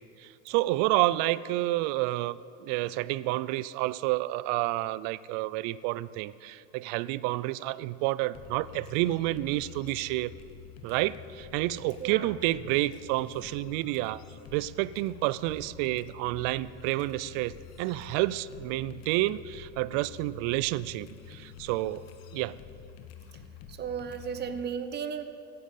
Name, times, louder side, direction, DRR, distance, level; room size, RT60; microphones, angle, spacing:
voice 1, 0.0-10.3 10.8-14.2 14.5-22.1 22.3-22.6, right 17 dB, 65° right, 19 dB, 0.5 m, -29 dB
sound 1, 8.3-24.6, left 8 dB, 60° left, 1.2 m, -48 dB
voice 2, 23.7-25.2, right 7 dB, 35° right, 10 dB, 0.9 m, -34 dB
12.5 x 9.2 x 6.7 m, 2.7 s
supercardioid pair, 105°, 30 cm